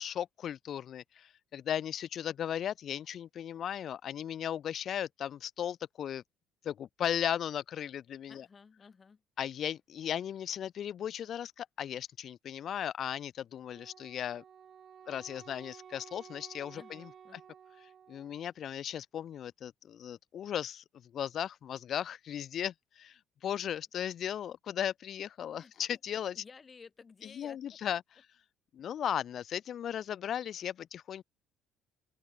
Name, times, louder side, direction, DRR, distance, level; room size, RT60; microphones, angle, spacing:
voice 1, 0.0-6.2 6.6-8.4 9.4-14.4 15.1-17.1 18.1-20.8 21.1-26.4 27.4-28.0 28.7-31.2, left 9 dB, 55° left, 0.3 m, -36 dB
voice 2, 8.3-9.2 16.7-17.4 25.6-25.7 26.3-27.8, left 5 dB, 35° left, 1.8 m, -55 dB
Wind instrument woodwind instrument, 13.7-18.5, right 8 dB, 50° right, 0.8 m, -54 dB
open air
supercardioid pair, 80°, 0 cm